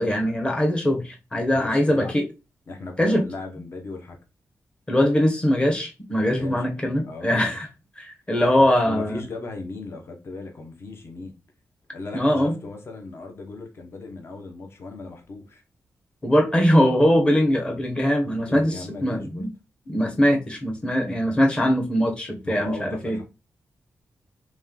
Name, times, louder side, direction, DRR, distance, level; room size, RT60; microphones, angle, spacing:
voice 1, 0.0-2.2 3.0-3.2 4.9-7.7 8.0-9.2 12.1-12.5 16.2-19.5 19.9-23.2, equal, 20° left, 0.9 m, -21 dB
voice 2, 1.6-2.1 2.7-4.2 6.2-7.6 8.5-11.3 11.9-15.6 18.4-19.4 22.4-23.2, left 3 dB, 50° left, 1.0 m, -37 dB
3.1 x 3.1 x 3.8 m
wide cardioid pair, 115°, 6 cm